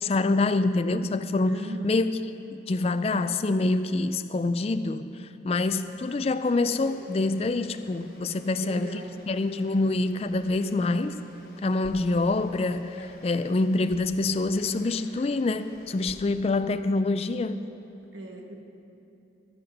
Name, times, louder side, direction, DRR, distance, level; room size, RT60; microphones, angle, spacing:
voice 1, 0.0-2.2 2.5-5.1 5.4-9.0 9.3-11.2 11.6-17.6, left 2 dB, 30° left, 11 dB, 0.3 m, -26 dB
voice 2, 1.5-2.0 8.5-9.3 18.1-18.6, right 1 dB, 75° right, 2 dB, 1.3 m, -40 dB
Frog, 5.8-16.2, left 2 dB, 50° left, 1.2 m, -50 dB
13.5 x 7.7 x 6.4 m, 2.8 s
head